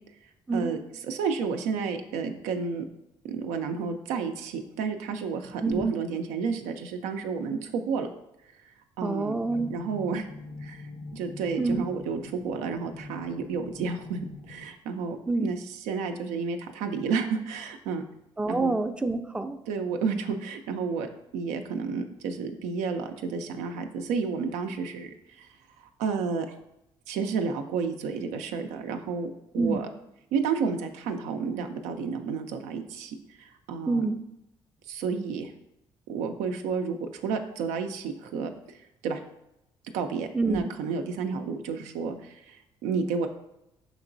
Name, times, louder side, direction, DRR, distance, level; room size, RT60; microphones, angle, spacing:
voice 1, 0.5-2.9 3.2-8.1 8.6-9.3 9.7-10.3 10.6-18.0 18.5-18.7 19.7-25.5 25.8-26.5 27.1-29.9 30.3-34.1 34.9-35.5 36.1-39.2 39.9-43.3, right 5 dB, 85° right, 6 dB, 0.4 m, -31 dB
voice 2, 9.0-9.7 11.6-11.8 15.3-15.5 18.4-19.6 29.6-29.8 33.9-34.2 40.3-40.7, right 3 dB, 10° right, 8 dB, 0.4 m, -27 dB
sound 1, 9.4-14.7, left 2 dB, 65° left, 0.6 m, -44 dB
5.3 x 2.9 x 2.5 m, 0.86 s
supercardioid pair, 55°, 12 cm